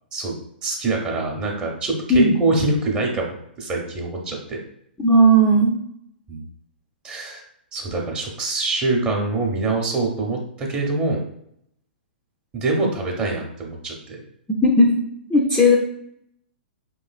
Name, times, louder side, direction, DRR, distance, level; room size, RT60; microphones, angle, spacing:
voice 1, 0.6-4.6 6.3-6.5 7.0-7.4 7.7-11.3 12.5-14.2, right 3 dB, 20° right, 0 dB, 0.8 m, -24 dB
voice 2, 5.0-5.8 14.6-15.0 15.3-15.8, right 1 dB, 10° left, -2 dB, 0.5 m, -15 dB
5.1 x 3.1 x 2.4 m, 0.70 s
figure-of-eight pair, 115°, 5 cm